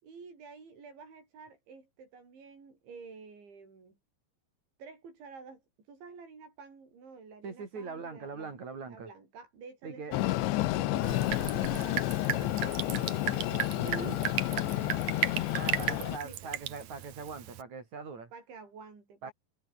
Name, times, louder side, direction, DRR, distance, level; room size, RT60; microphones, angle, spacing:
voice 1, 0.0-4.0 4.8-5.6 5.9-8.6 8.9-10.2 11.0-15.5 15.9-16.6 18.3-19.3, right 5 dB, 80° right, 9.9 m, -50 dB
voice 2, 7.4-9.1 9.8-10.1 10.8-11.2 13.8-14.2 15.5-18.3 19.2-19.3, right 4 dB, 40° right, 5.2 m, -41 dB
Train, 10.1-16.2, left 16 dB, 80° left, 3.4 m, -31 dB
Drip, 11.0-17.6, right 11 dB, 65° right, 1.9 m, -35 dB
omnidirectional pair, 5.2 m